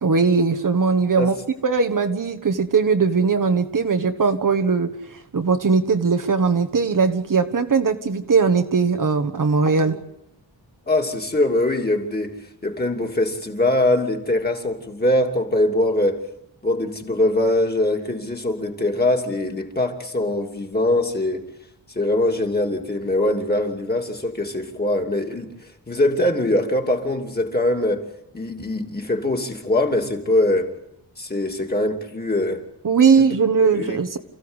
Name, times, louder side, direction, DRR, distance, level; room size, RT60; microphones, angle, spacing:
voice 1, 0.0-1.4 1.6-10.0 32.8-34.2, right 5 dB, 50° right, 1.5 m, -19 dB
voice 2, 10.9-16.2 16.6-21.5 21.9-25.5 25.9-28.0 28.3-30.7 31.2-32.6 33.2-33.3 33.6-34.2, left 1 dB, 20° left, 2.8 m, -22 dB
28.5 x 15.5 x 8.1 m
wide cardioid pair, 150°, 42 cm